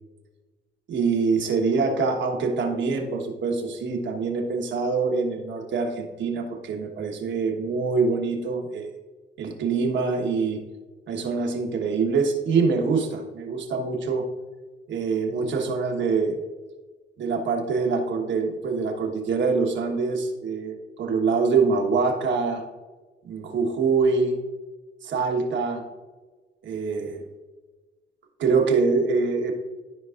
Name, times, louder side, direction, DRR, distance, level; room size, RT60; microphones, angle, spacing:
voice 1, 0.9-8.9 9.4-10.6 11.1-14.3 14.9-16.4 17.2-22.6 23.2-24.4 25.0-25.8 26.6-27.2 28.4-29.5, right 4 dB, 70° right, 2 dB, 1.3 m, -24 dB
13.5 x 4.7 x 2.5 m, 1.3 s
cardioid pair, 90°, 20 cm